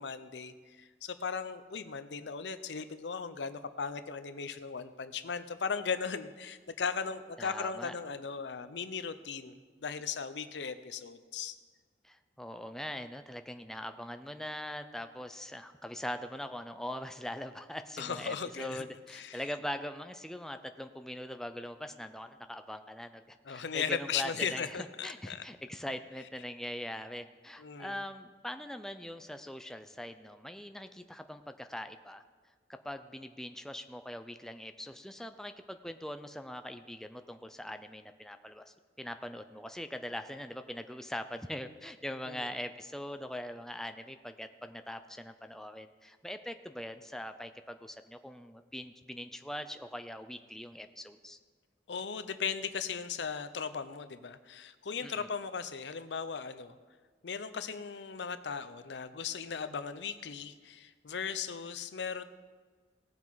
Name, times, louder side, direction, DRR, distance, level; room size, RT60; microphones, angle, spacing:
voice 1, 0.0-11.6 18.0-18.9 19.1-19.4 23.5-25.4 27.6-28.0 42.3-42.5 51.9-56.8 57.2-62.2, left 6 dB, 85° left, 12 dB, 0.6 m, -37 dB
voice 2, 7.4-8.0 12.0-32.2 32.7-51.4 55.0-55.3, left 1 dB, 5° left, 8 dB, 0.4 m, -42 dB
18.0 x 7.4 x 4.0 m, 1.5 s
head